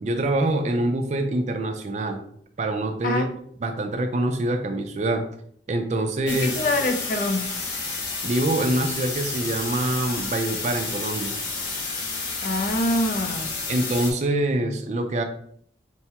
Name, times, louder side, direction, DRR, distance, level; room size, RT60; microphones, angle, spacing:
voice 1, 0.0-2.2 2.6-3.3 3.6-5.2 5.7-6.5 8.2-11.3 13.7-15.2, right 1 dB, 40° right, 6 dB, 0.3 m, -25 dB
sound 1, 6.3-14.1, left 3 dB, 85° left, 0.9 m, -30 dB
voice 2, 6.3-7.5 12.4-13.6, left 1 dB, 45° left, 5 dB, 0.4 m, -25 dB
4.6 x 2.1 x 2.8 m, 0.64 s
head